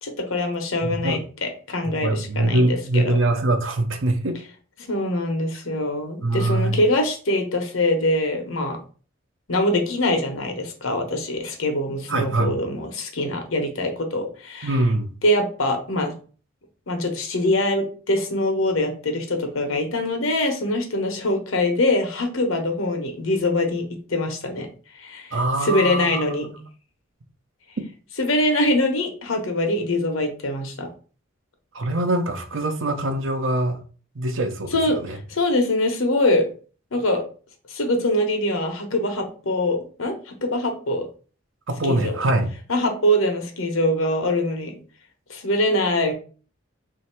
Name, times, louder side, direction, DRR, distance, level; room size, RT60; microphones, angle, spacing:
voice 1, 0.0-3.2 4.9-8.8 9.5-14.7 15.2-16.1 16.9-23.8 24.1-24.7 25.0-26.5 28.2-30.9 34.7-35.0 35.3-36.4 36.9-37.2 37.7-41.1 41.8-42.2 42.7-44.8 45.3-46.1, left 1 dB, 90° left, 4 dB, 1.0 m, -23 dB
voice 2, 0.8-1.2 1.8-4.4 5.7-5.8 6.2-6.8 12.1-12.5 14.6-15.2 25.3-26.6 31.7-33.8 34.1-35.2 41.7-42.5, right 2 dB, 75° right, 7 dB, 0.7 m, -23 dB
3.2 x 2.8 x 4.3 m, 0.39 s
head